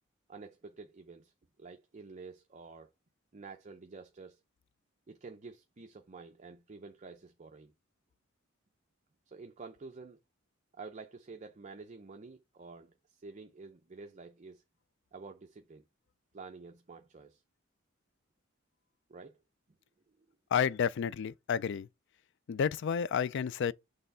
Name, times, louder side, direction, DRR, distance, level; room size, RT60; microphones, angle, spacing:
voice 1, 0.3-1.3 1.6-2.9 3.3-4.4 5.1-7.7 9.3-10.2 10.7-14.6 15.1-15.8 16.3-17.4 19.1-19.4, right 4 dB, 35° right, 0.5 m, -49 dB
voice 2, 20.5-21.9 22.5-23.7, left 7 dB, 60° left, 0.4 m, -30 dB
6.7 x 3.4 x 5.4 m
head